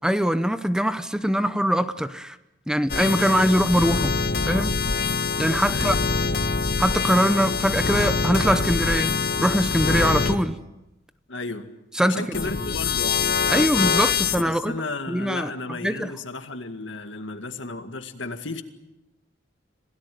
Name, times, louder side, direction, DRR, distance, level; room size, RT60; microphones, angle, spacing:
voice 1, 0.0-2.4 2.7-4.1 4.5-4.7 5.4-6.0 6.8-9.1 9.4-10.6 11.9-12.4 13.5-14.7 15.1-15.5 15.8-16.1, equal, 5° right, 12 dB, 0.8 m, -22 dB
sound 1, 2.9-10.4 12.3-14.4, left 5 dB, 55° left, 1.5 m, -24 dB
voice 2, 3.2-3.5 5.7-6.4 11.3-11.7 12.0-13.1 14.4-18.6, left 3 dB, 85° left, 7 dB, 2.1 m, -34 dB
27.0 x 17.5 x 9.3 m, 0.96 s
head